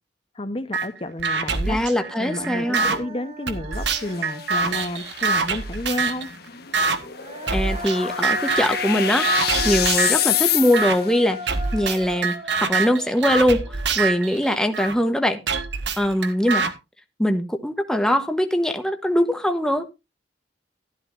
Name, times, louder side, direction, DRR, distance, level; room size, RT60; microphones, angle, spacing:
voice 1, 0.3-1.8 2.2-6.3, left 1 dB, 30° left, 10 dB, 0.9 m, -31 dB
sound 1, 0.7-0.9 1.2-3.0 3.5-6.3 6.7-7.0 7.5-8.0 8.2-8.8 9.2-10.2 10.7-11.0 11.5-14.9 15.5-16.7, right 4 dB, 65° right, 1.4 m, -25 dB
Human voice, 1.2-1.3 1.6-5.3 7.0-14.2, equal, 35° right, 3.4 m, -36 dB
voice 2, 1.7-2.9 7.5-11.4 11.7-12.3 12.6-15.4 16.0-16.6 17.2-20.0, equal, 5° left, 7 dB, 1.0 m, -22 dB
sound 2, 3.7-11.2, left 11 dB, 55° left, 1.3 m, -28 dB
13.0 x 12.0 x 2.6 m, 0.25 s
head